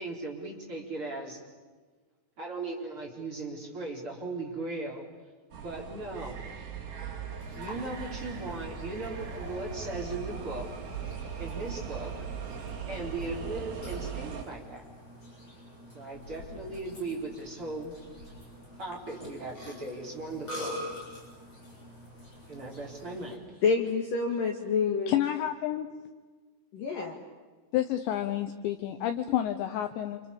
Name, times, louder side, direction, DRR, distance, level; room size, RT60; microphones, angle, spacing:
voice 1, 0.0-1.4 2.4-5.1 5.5-6.4 7.5-10.7 11.4-12.1 12.8-14.8 15.9-17.9 18.8-20.8 22.5-23.4, right 2 dB, 30° right, -2 dB, 4.3 m, -38 dB
sound 1, 5.5-14.4, right 7 dB, 50° right, 5.0 m, -39 dB
Burping eructation, 7.4-23.3, left 1 dB, 25° left, 8.6 m, -45 dB
voice 2, 23.6-25.2 26.7-27.2, left 5 dB, 55° left, 2 dB, 2.9 m, -27 dB
voice 3, 25.1-25.9 27.7-30.2, left 12 dB, 75° left, 8 dB, 2.8 m, -29 dB
28.5 x 28.5 x 7.1 m, 1.4 s
omnidirectional pair, 5.9 m